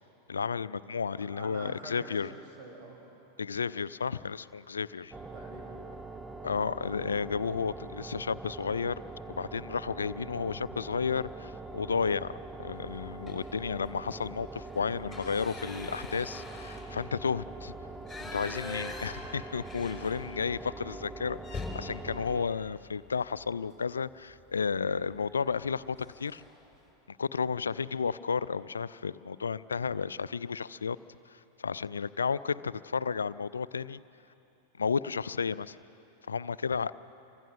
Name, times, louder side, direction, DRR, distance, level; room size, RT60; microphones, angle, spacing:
voice 1, 0.3-2.3 3.4-5.1 6.4-9.0 9.3-17.7 18.2-26.4 27.1-31.0 31.3-34.0 34.8-35.8 36.3-36.9, left 5 dB, 70° left, 17 dB, 0.4 m, -32 dB
voice 2, 1.2-3.0 5.3-5.8 19.6-19.7, right 2 dB, 35° right, 0 dB, 6.9 m, -46 dB
sound 1, 5.1-22.5, right 3 dB, 10° right, 0.6 m, -43 dB
sound 2, 13.2-13.6 14.0-14.2 14.5-20.6 20.9-21.0 21.4-23.5 24.9-25.2 25.5-25.7 26.0-26.6, left 3 dB, 5° left, 5.3 m, -44 dB
28.0 x 24.5 x 6.3 m, 3.0 s
figure-of-eight pair, 90°, 0 cm